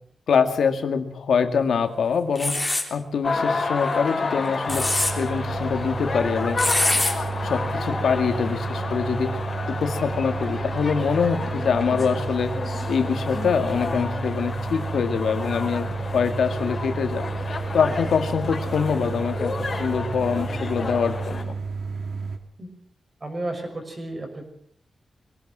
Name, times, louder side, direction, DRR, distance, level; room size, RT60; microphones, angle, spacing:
voice 1, 0.3-2.6 2.9-4.8 5.2-6.6 7.4-9.4 9.7-12.5 12.9-17.2 17.5-19.5 19.8-21.5, left 6 dB, 90° left, 7 dB, 2.1 m, -24 dB
sound 1, 2.4-2.9 4.5-5.1 6.6-7.1, left 2 dB, 10° left, 3.3 m, -23 dB
sound 2, 3.2-21.4, left 3 dB, 35° left, 5.0 m, -31 dB
sound 3, 4.7-22.4, right 4 dB, 75° right, 2.5 m, -31 dB
voice 2, 23.2-24.4, right 1 dB, 25° right, 5 dB, 5.9 m, -33 dB
22.5 x 17.5 x 7.5 m, 0.63 s
wide cardioid pair, 145°, 0 cm